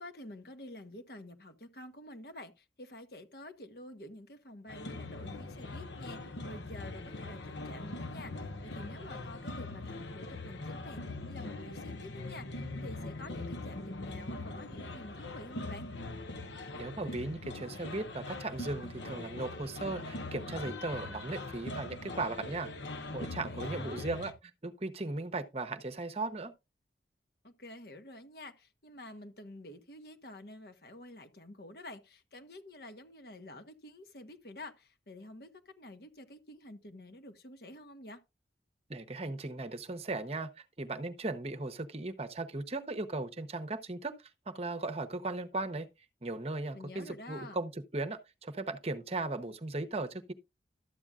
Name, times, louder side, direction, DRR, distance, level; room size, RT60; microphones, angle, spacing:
voice 1, 0.0-15.9 23.5-24.1 27.4-38.2 46.7-47.6, left 1 dB, 55° left, 1.4 m, -49 dB
sound 1, 4.7-24.3, left 2 dB, 85° left, 1.1 m, -42 dB
voice 2, 16.7-22.7 23.1-24.3 24.6-26.5 38.9-44.1 44.5-45.9 46.2-50.3, right 2 dB, 35° right, 0.9 m, -37 dB
13.0 x 8.7 x 2.4 m
head